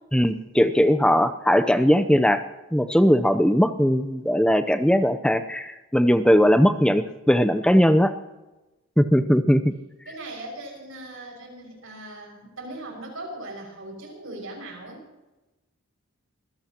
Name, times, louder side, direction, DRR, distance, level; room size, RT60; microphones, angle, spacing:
voice 1, 0.1-2.4 2.7-8.1 9.0-9.7, equal, 5° left, 11 dB, 0.6 m, -19 dB
voice 2, 10.1-15.0, right 2 dB, 70° right, 0 dB, 6.1 m, -39 dB
25.0 x 16.0 x 3.0 m, 1.1 s
head